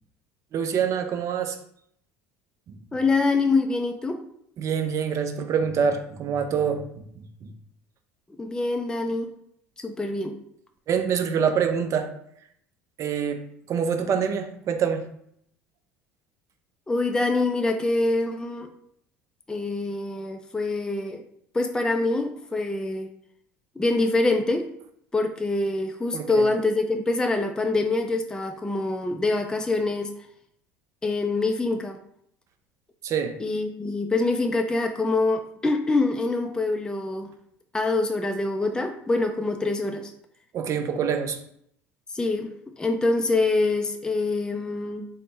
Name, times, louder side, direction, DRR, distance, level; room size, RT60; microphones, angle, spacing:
voice 1, 0.5-1.6 2.7-2.8 4.6-7.5 10.9-12.1 13.0-13.4 13.7-15.0 26.1-26.5 33.0-33.4 40.5-41.4, right 7 dB, 45° right, 7 dB, 0.5 m, -26 dB
voice 2, 2.9-4.2 8.4-9.3 9.8-10.3 16.9-18.7 19.5-21.2 21.5-23.1 23.8-24.7 25.1-30.1 31.0-32.0 33.4-37.3 37.7-40.1 42.1-45.1, left 2 dB, 10° left, 5 dB, 0.4 m, -25 dB
3.4 x 2.1 x 4.1 m, 0.71 s
hypercardioid pair, 75°, 7 cm